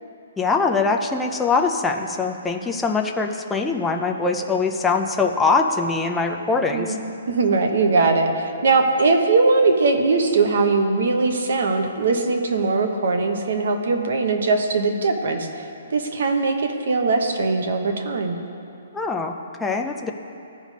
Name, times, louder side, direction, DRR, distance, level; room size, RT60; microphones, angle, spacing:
voice 1, 0.4-7.0 18.9-19.3 19.6-20.1, left 4 dB, 5° left, 1 dB, 0.3 m, -22 dB
voice 2, 7.3-18.4, right 3 dB, 55° right, 5 dB, 0.9 m, -20 dB
15.0 x 5.2 x 3.3 m, 2.8 s
hypercardioid pair, 175°, 0 cm